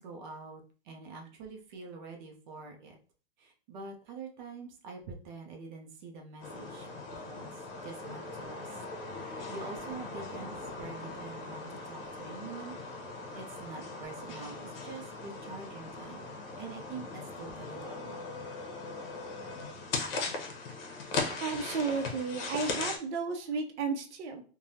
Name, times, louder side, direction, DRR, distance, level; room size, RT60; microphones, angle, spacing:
voice 1, 0.0-3.0 3.4-8.8 9.2-12.8 13.3-16.3 16.6-18.2, right 4 dB, 45° right, 2 dB, 0.6 m, -46 dB
sound 1, 6.4-23.0, left 3 dB, 55° left, 0.9 m, -39 dB
voice 2, 21.4-24.4, right 4 dB, 80° right, 4 dB, 0.7 m, -33 dB
3.2 x 2.2 x 2.6 m, 0.40 s
hypercardioid pair, 145°, 34 cm